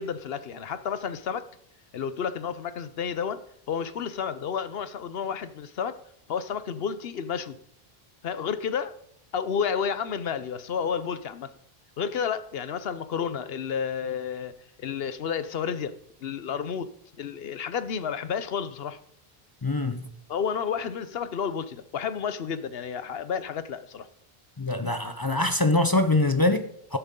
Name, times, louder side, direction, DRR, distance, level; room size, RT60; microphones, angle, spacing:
voice 1, 0.0-1.5 1.9-6.0 6.3-7.6 8.2-9.0 9.3-11.5 12.0-15.9 16.2-16.9 17.2-19.0 20.3-24.1, left 7 dB, 70° left, 0.9 m, -31 dB
voice 2, 19.6-20.0 24.6-27.0, left 2 dB, 25° left, 0.6 m, -24 dB
12.5 x 10.5 x 3.7 m
omnidirectional pair, 1.1 m